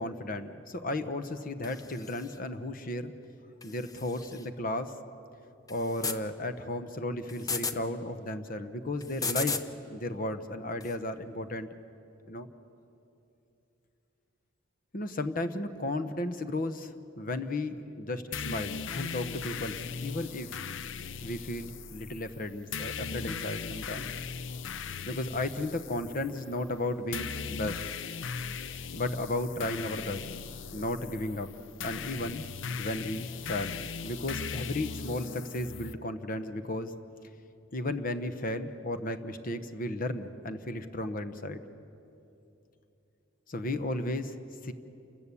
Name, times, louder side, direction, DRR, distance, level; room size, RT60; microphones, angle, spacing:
voice 1, 0.0-3.1 3.6-4.9 5.7-9.6 9.9-11.7 12.3-12.5 14.9-20.6 21.2-24.1 25.1-27.8 28.9-30.3 30.7-31.5 31.8-32.5 32.8-36.9 37.7-41.6 43.5-44.4 44.6-44.7, left 1 dB, 45° left, 10 dB, 1.0 m, -34 dB
sound 1, 1.6-2.4 3.6-4.5 5.7-6.2 7.3-7.8 9.0-9.7 10.8-10.9, left 4 dB, 20° left, 0.7 m, -35 dB
sound 2, 18.3-35.9, left 6 dB, 70° left, 0.5 m, -39 dB
29.0 x 14.0 x 8.4 m, 2.8 s
head